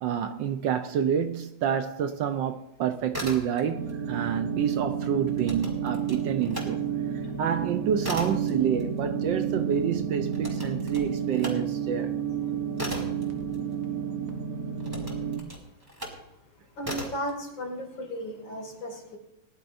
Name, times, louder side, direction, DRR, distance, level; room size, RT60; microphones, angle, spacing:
voice 1, 0.0-6.9 7.4-12.2, right 8 dB, 70° right, 1.2 m, -28 dB
sound 1, 3.1-3.9 4.2-6.7 7.1-14.1 14.8-16.3 16.8-17.3, equal, 10° right, 2.7 m, -38 dB
sound 2, 3.7-15.4, right 7 dB, 45° right, 1.5 m, -31 dB
voice 2, 15.9-16.3 16.7-19.2, equal, 60° left, 3.2 m, -36 dB
20.5 x 11.0 x 2.6 m
omnidirectional pair, 2.4 m